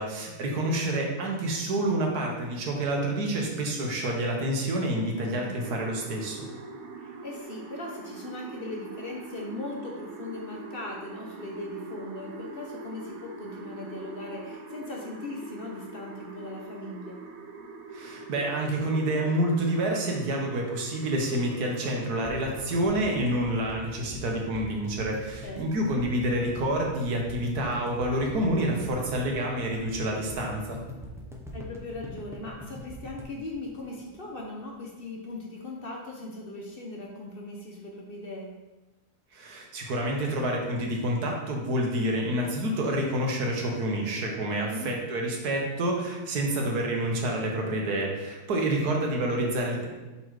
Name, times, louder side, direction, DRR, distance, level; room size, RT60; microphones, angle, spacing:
voice 1, 0.0-6.5 17.9-30.8 39.3-49.9, right 1 dB, 90° right, 0 dB, 1.7 m, -28 dB
voice 2, 0.6-1.1 5.3-5.6 7.0-17.2 25.4-25.9 31.5-38.5 44.6-44.9 49.4-49.5, left 2 dB, 45° left, -1 dB, 0.8 m, -39 dB
sound 1, 5.6-23.2, right 3 dB, 70° right, 1.1 m, -43 dB
sound 2, 22.2-34.4 34.7-34.8 35.0-35.1, equal, 5° right, 0.3 m, -42 dB
5.5 x 4.2 x 4.7 m, 1.1 s
omnidirectional pair, 1.6 m